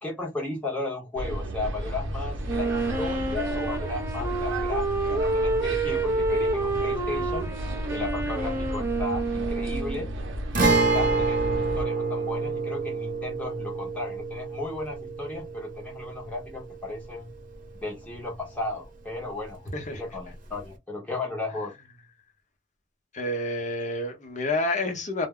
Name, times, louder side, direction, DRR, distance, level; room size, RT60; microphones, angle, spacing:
voice 1, 0.0-7.5 7.9-10.1 10.6-17.3 17.8-21.7, left 2 dB, 10° left, 0.7 m, -35 dB
sound 1, 1.2-11.8, right 1 dB, 85° right, 0.6 m, -33 dB
Wind instrument woodwind instrument, 2.5-10.1, right 2 dB, 15° right, 0.4 m, -28 dB
Guitar, 10.5-18.2 18.4-18.5 20.5-20.7, right 3 dB, 45° right, 0.8 m, -28 dB
voice 2, 23.1-25.3, left 2 dB, 40° left, 0.8 m, -29 dB
2.2 x 2.0 x 3.5 m
head